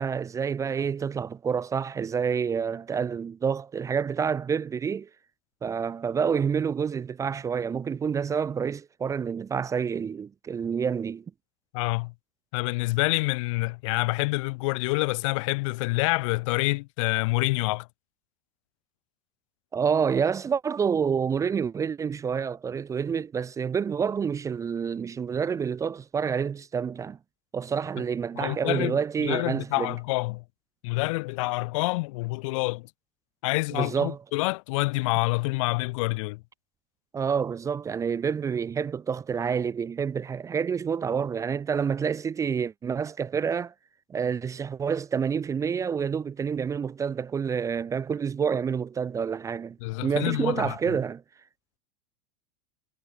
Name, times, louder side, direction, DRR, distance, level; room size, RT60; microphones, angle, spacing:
voice 1, 0.0-5.1 5.6-11.2 19.7-27.2 27.5-30.0 33.7-34.2 37.1-43.7 44.1-49.8 50.0-51.2, right 6 dB, 15° right, 0.8 m, -28 dB
voice 2, 11.7-12.1 12.5-17.9 28.4-30.4 30.8-32.9 33.4-36.4 49.8-50.7, left 24 dB, 60° left, 1.5 m, -27 dB
supercardioid pair, 135°, 18 cm